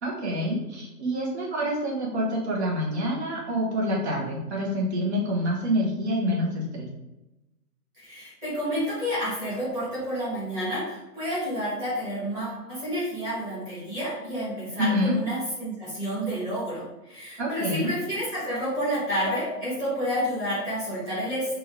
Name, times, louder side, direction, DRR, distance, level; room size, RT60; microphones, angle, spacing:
voice 1, 0.0-6.9 14.8-15.2 17.4-17.9, equal, 45° right, -3 dB, 1.5 m, -27 dB
voice 2, 8.0-21.6, equal, 5° right, -11 dB, 1.3 m, -30 dB
5.4 x 2.7 x 3.3 m, 0.98 s
hypercardioid pair, 165°, 48 cm